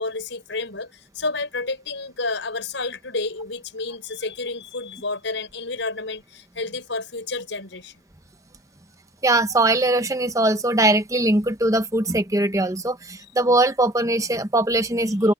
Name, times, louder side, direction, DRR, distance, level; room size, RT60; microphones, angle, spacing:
voice 1, 0.0-7.9, left 3 dB, 80° left, 5.0 m, -30 dB
voice 2, 9.2-15.3, right 1 dB, 15° right, 1.0 m, -21 dB
head